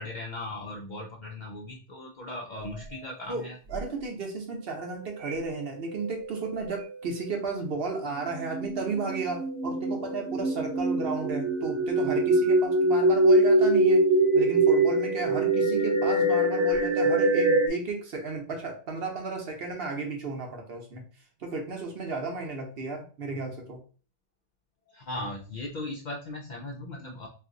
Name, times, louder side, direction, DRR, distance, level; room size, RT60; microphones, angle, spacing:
voice 1, 0.0-3.6 24.9-27.3, left 2 dB, 60° left, 0 dB, 0.5 m, -38 dB
sound 1, 2.6-3.1 3.7-3.8 5.2-5.6 5.9-6.8 8.2-17.7, right 1 dB, 90° right, 0.9 m, -24 dB
voice 2, 3.3-14.0 14.3-21.0 21.4-23.8, right 3 dB, 60° right, 2 dB, 0.9 m, -33 dB
2.7 x 2.4 x 3.8 m, 0.38 s
omnidirectional pair, 1.2 m